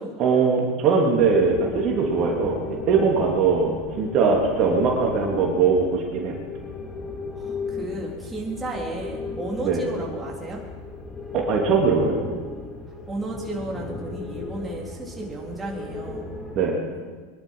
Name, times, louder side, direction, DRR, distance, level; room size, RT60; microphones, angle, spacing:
voice 1, 0.2-6.3 9.6-9.8 11.3-12.1 16.5-16.8, right 5 dB, 45° right, -1 dB, 3.1 m, -21 dB
sound 1, 1.2-16.6, left 3 dB, 20° left, 2.5 m, -36 dB
voice 2, 7.3-10.6 13.1-16.3, right 2 dB, 10° right, -3 dB, 4.0 m, -33 dB
22.5 x 11.5 x 5.7 m, 1.5 s
supercardioid pair, 110°, 0 cm